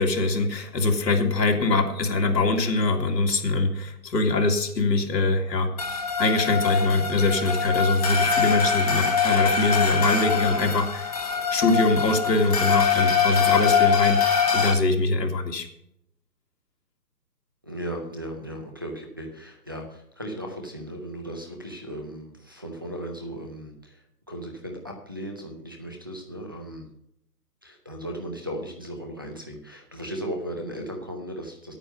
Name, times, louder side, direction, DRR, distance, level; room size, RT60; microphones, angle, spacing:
voice 1, 0.0-5.7 6.2-11.1 11.5-15.7, left 3 dB, 85° left, 3 dB, 2.4 m, -23 dB
sound 1, 5.8-14.7, left 6 dB, 25° left, 0.9 m, -23 dB
voice 2, 17.6-26.8 27.6-31.7, equal, 15° right, 1 dB, 0.6 m, -36 dB
10.0 x 9.0 x 5.3 m, 0.74 s
hypercardioid pair, 170°, 49 cm